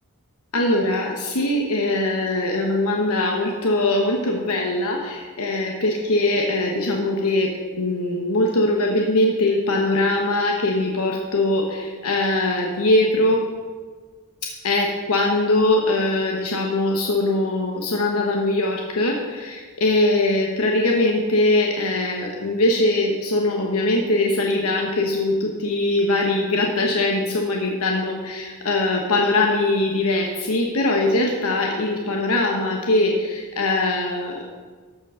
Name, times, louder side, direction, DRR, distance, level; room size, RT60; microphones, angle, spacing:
voice 1, 0.5-13.5 14.6-34.6, left 2 dB, 70° left, 0 dB, 1.1 m, -21 dB
13.5 x 5.2 x 5.6 m, 1.5 s
head